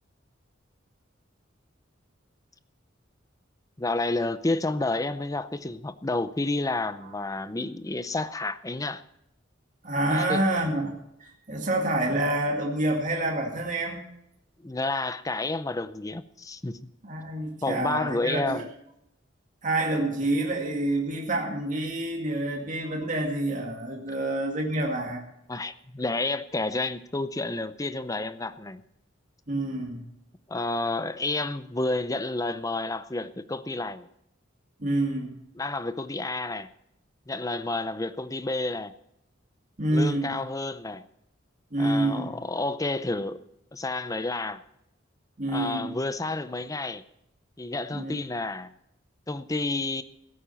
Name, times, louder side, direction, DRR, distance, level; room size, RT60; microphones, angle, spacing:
voice 1, 3.8-9.0 10.1-10.4 14.6-16.8 17.6-18.7 25.5-28.8 30.5-34.1 35.6-36.7 37.3-38.9 39.9-41.0 41.8-43.4 43.7-44.6 45.5-47.0 47.6-48.7 49.3-50.0, left 2 dB, 15° left, 0.6 m, -30 dB
voice 2, 9.8-11.0 11.2-14.1 17.0-18.6 19.6-25.2 29.5-30.0 34.8-35.3 39.8-40.3 41.7-42.3 45.4-45.9 47.9-48.1, right 1 dB, 40° right, 2.2 m, -27 dB
16.0 x 8.9 x 5.7 m
head